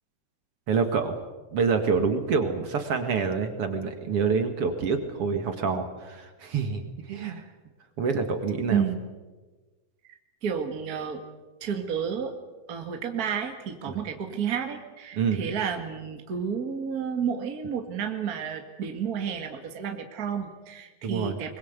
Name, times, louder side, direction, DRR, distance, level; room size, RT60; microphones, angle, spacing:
voice 1, 0.7-1.2 1.5-7.5 8.0-8.8 13.9-14.0 15.1-15.4 21.0-21.4, right 5 dB, 50° right, 7 dB, 1.8 m, -27 dB
voice 2, 10.4-11.2 11.6-12.3 12.7-21.6, right 7 dB, 65° right, 4 dB, 0.9 m, -31 dB
23.5 x 21.5 x 8.1 m, 1.2 s
omnidirectional pair, 4.9 m